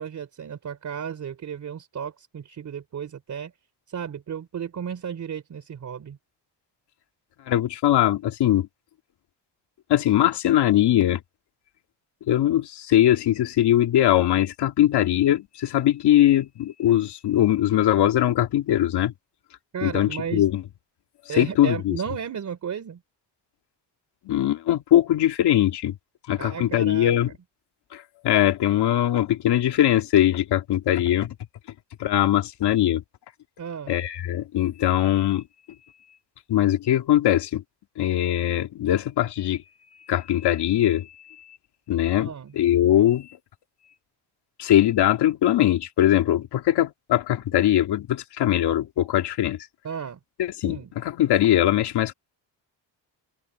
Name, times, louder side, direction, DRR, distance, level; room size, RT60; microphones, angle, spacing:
voice 1, 0.0-3.5 3.9-6.2 19.7-20.5 21.3-23.0 26.4-27.1 33.6-33.9 42.2-42.5 49.8-50.2 50.6-50.9, right 8 dB, 40° right, 3.8 m, -34 dB
voice 2, 7.5-8.7 9.9-11.2 12.3-19.1 19.8-20.6 21.3-22.0 24.2-26.0 26.3-27.3 27.9-31.3 32.0-33.0 33.9-35.4 36.5-37.6 38.0-39.6 40.0-41.1 41.9-43.3 44.6-49.6 50.4-52.1, left 12 dB, 65° left, 2.5 m, -21 dB
cardioid pair, 140°, 43 cm